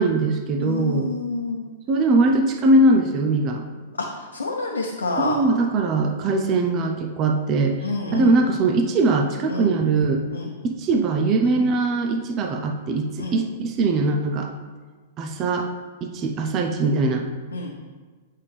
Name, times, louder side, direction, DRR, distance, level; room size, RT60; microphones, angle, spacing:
voice 1, 0.0-1.1 1.9-3.6 5.2-7.8 8.1-10.2 10.6-14.5 15.2-15.7 16.0-17.3, right 2 dB, 30° right, 3 dB, 0.7 m, -21 dB
voice 2, 0.6-1.6 4.0-5.4 7.8-8.4 9.5-9.7 10.3-10.5 11.4-11.6 13.2-13.4 17.5-17.7, left 3 dB, 80° left, 0 dB, 0.8 m, -28 dB
8.1 x 5.5 x 3.4 m, 1.4 s
figure-of-eight pair, 105°, 0 cm